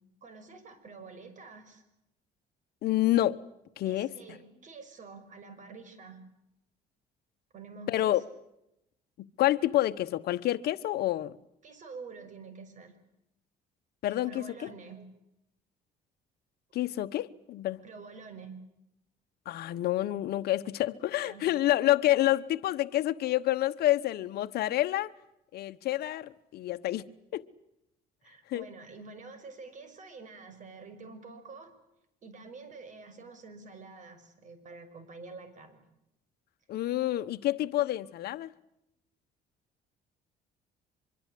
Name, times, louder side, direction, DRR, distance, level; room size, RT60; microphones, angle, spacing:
voice 1, 0.2-1.8 3.8-6.2 7.5-8.2 11.6-13.0 14.1-15.1 17.8-18.6 21.2-21.5 28.2-31.7 32.2-35.9, right 4 dB, 45° right, 6.1 m, -47 dB
voice 2, 2.8-3.4 3.8-4.1 7.9-8.2 9.4-11.4 14.0-14.7 16.7-17.8 19.5-25.1 25.5-27.1 27.3-27.4 28.5-28.7 36.7-38.5, left 14 dB, 70° left, 1.1 m, -28 dB
25.0 x 23.5 x 8.4 m
cardioid pair, 110°, 17 cm